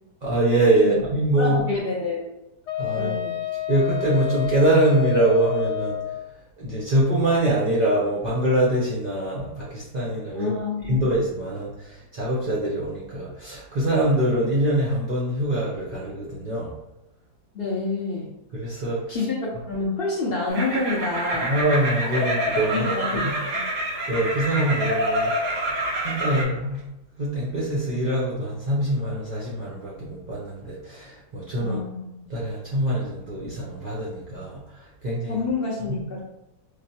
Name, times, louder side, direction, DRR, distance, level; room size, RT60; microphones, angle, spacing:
voice 1, 0.2-1.5 2.8-3.2 3.7-6.0 6.6-10.5 10.8-16.7 18.5-19.2 21.5-22.9 23.2-23.3 24.1-26.8 27.2-31.8 32.3-34.6 35.0-35.4, right 1 dB, 70° right, -7 dB, 0.4 m, -24 dB
voice 2, 1.3-2.3 2.9-3.4 10.3-11.0 17.5-18.3 19.1-21.5 22.7-23.6 31.6-32.3 35.3-36.2, left 3 dB, 60° left, -4 dB, 0.6 m, -28 dB
Wind instrument woodwind instrument, 2.7-6.2, left 14 dB, 90° left, 1.2 m, -29 dB
sound 1, 20.5-26.4, right 1 dB, 90° right, 1.7 m, -27 dB
5.0 x 2.0 x 2.7 m, 0.89 s
omnidirectional pair, 1.7 m